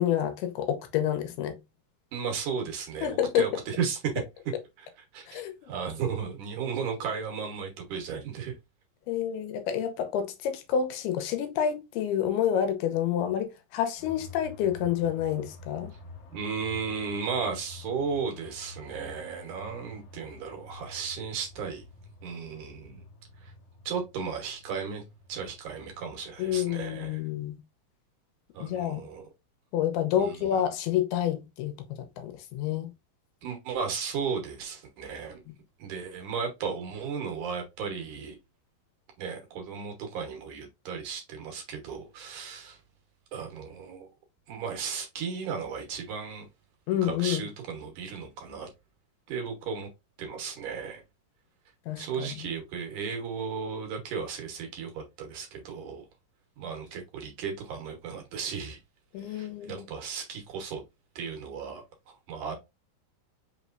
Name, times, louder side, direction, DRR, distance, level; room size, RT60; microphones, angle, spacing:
voice 1, 0.0-1.6 3.0-3.5 5.3-5.7 9.1-15.9 26.4-27.6 28.6-29.1 29.7-32.9 35.5-35.6 46.9-47.4 51.9-52.5 59.1-59.9, left 10 dB, 90° left, 2.7 m, -29 dB
voice 2, 2.1-4.2 4.8-4.9 5.1-8.5 16.3-21.8 22.2-23.0 23.4-23.5 23.8-25.0 25.3-27.2 28.5-29.3 30.2-30.5 33.4-35.4 35.8-38.4 39.2-42.8 43.3-44.1 44.5-46.5 47.0-48.7 49.3-49.9 50.2-51.0 52.0-56.1 56.6-58.8 59.2-60.8 61.2-62.6, right 6 dB, 65° right, 2.4 m, -35 dB
sound 1, 14.0-26.9, left 3 dB, 60° left, 1.9 m, -49 dB
5.9 x 3.1 x 2.5 m
omnidirectional pair, 4.5 m